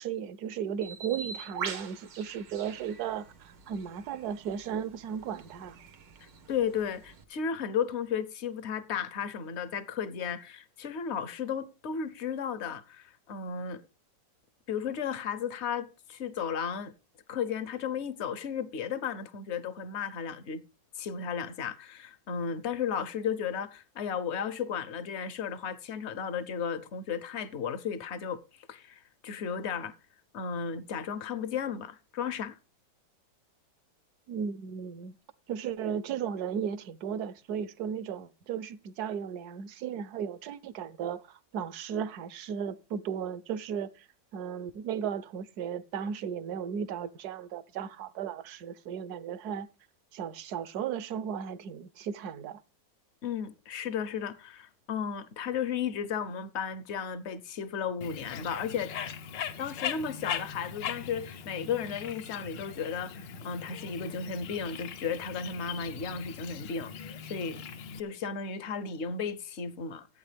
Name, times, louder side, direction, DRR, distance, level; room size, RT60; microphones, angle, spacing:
voice 1, 0.0-5.8 34.3-35.1 35.5-44.1 44.3-49.7 50.1-52.6, right 8 dB, 70° right, 1.1 m, -35 dB
Bird, 0.8-7.2, right 6 dB, 90° right, 2.0 m, -44 dB
voice 2, 6.5-13.8 14.7-16.9 17.3-20.6 21.0-29.9 30.3-32.6 53.2-58.9 59.6-67.6 67.9-70.1, left 7 dB, 55° left, 0.8 m, -34 dB
Bird 2, 58.0-68.0, left 8 dB, 80° left, 1.5 m, -40 dB
15.0 x 8.7 x 3.3 m
omnidirectional pair, 1.9 m